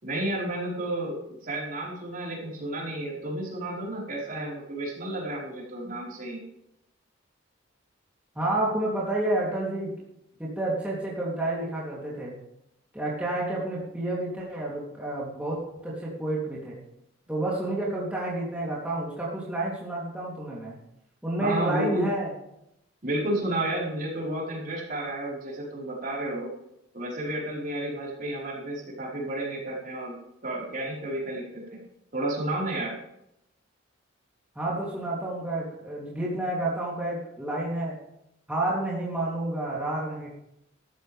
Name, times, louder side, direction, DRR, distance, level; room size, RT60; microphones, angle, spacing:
voice 1, 0.0-6.4 21.4-22.1 23.0-26.5 26.9-30.2 30.4-31.8 32.1-33.0, right 1 dB, 45° right, -4 dB, 5.0 m, -31 dB
voice 2, 8.3-9.9 10.4-12.4 12.9-15.6 15.8-16.8 17.3-20.7 21.2-22.3 34.5-38.0 38.5-40.3, right 2 dB, 5° right, -7 dB, 3.3 m, -30 dB
14.5 x 13.5 x 3.6 m, 0.80 s
head